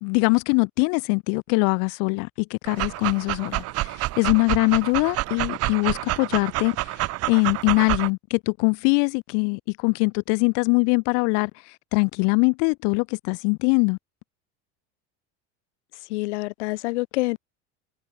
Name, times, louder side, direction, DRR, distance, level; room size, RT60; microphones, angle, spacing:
voice 1, 0.0-14.0, left 39 dB, 60° left, 1.3 m, -23 dB
Dog, 2.7-8.1, right 18 dB, 45° right, 1.4 m, -28 dB
voice 2, 16.1-17.4, left 22 dB, 85° left, 1.6 m, -27 dB
supercardioid pair, 140°, 34 cm